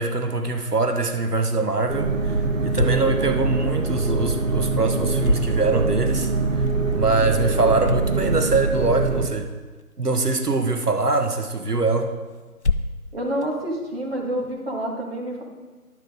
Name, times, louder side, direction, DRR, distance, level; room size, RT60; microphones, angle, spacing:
voice 1, 0.0-6.3 6.9-9.5 10.0-12.1, right 3 dB, 80° right, 6 dB, 1.3 m, -23 dB
sound 1, 1.0-14.6, left 4 dB, 50° left, 0.4 m, -35 dB
sound 2, 1.9-9.3, right 3 dB, 55° right, 1.1 m, -23 dB
voice 2, 13.1-15.4, right 1 dB, 40° right, -1 dB, 2.0 m, -28 dB
11.5 x 7.1 x 3.7 m, 1.3 s
figure-of-eight pair, 155°, 46 cm